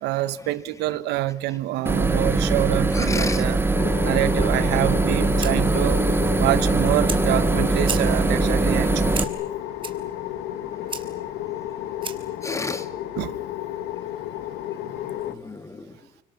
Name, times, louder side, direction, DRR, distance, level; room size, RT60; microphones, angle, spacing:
voice 1, 0.0-3.6 4.0-6.0 6.4-9.2 13.2-13.3, right 15 dB, 90° right, 1.1 m, -26 dB
voice 2, 1.5-2.0 2.9-3.4 12.4-13.1 15.2-16.0, left 3 dB, 15° left, 2.4 m, -33 dB
sound 1, 1.9-9.2, right 3 dB, 15° right, 2.0 m, -21 dB
sound 2, 3.7-15.3, left 12 dB, 85° left, 1.8 m, -32 dB
Fire, 5.0-12.4, right 5 dB, 30° right, 2.9 m, -38 dB
30.0 x 24.0 x 7.0 m
cardioid pair, 110°, 17 cm